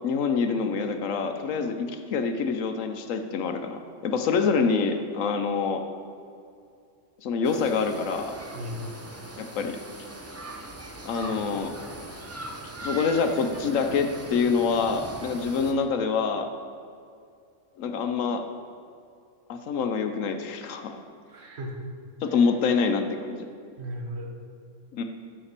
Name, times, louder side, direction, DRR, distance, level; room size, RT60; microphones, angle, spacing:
voice 1, 0.0-5.8 7.2-8.3 9.4-9.8 11.1-12.1 12.8-16.5 17.8-18.4 19.5-21.0 22.2-23.4 24.9-25.0, left 5 dB, 75° left, 6 dB, 1.0 m, -26 dB
sound 1, 7.4-15.7, right 1 dB, 25° right, 0.3 m, -40 dB
voice 2, 8.5-8.9 11.1-11.5 21.3-21.8 22.3-22.5 23.8-24.3, equal, 55° right, 0 dB, 1.3 m, -37 dB
7.1 x 5.9 x 6.6 m, 2.3 s
omnidirectional pair, 1.4 m